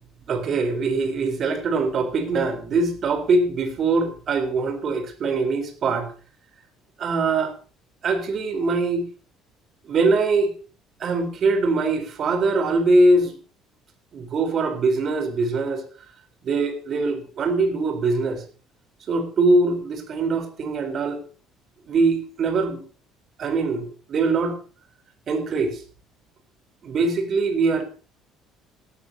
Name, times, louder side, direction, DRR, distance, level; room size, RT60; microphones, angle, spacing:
voice 1, 0.3-6.1 7.0-7.5 8.0-9.1 9.9-10.5 11.0-13.4 14.1-15.8 16.4-18.4 19.1-21.2 21.9-22.8 23.4-24.6 25.3-25.8 26.8-27.8, right 3 dB, 40° right, 8 dB, 3.9 m, -22 dB
18.5 x 13.5 x 2.8 m, 0.38 s
cardioid pair, 140°, 0 cm